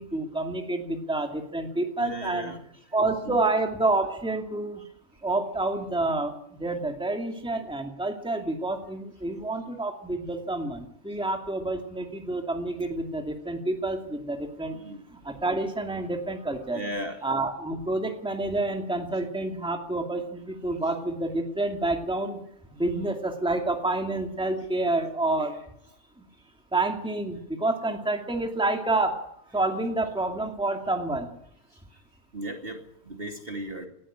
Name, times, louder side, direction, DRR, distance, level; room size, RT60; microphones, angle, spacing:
voice 1, 0.0-2.5 2.9-4.8 5.2-14.8 15.1-16.8 17.2-22.4 22.7-25.6 26.2-26.3 26.7-29.2 29.5-31.3, right 2 dB, 5° right, 4 dB, 2.3 m, -28 dB
voice 2, 2.0-2.6 3.2-3.4 14.7-15.0 16.7-17.2 32.3-33.9, right 1 dB, 40° right, 4 dB, 2.7 m, -36 dB
19.5 x 13.5 x 9.9 m, 0.74 s
omnidirectional pair, 1.5 m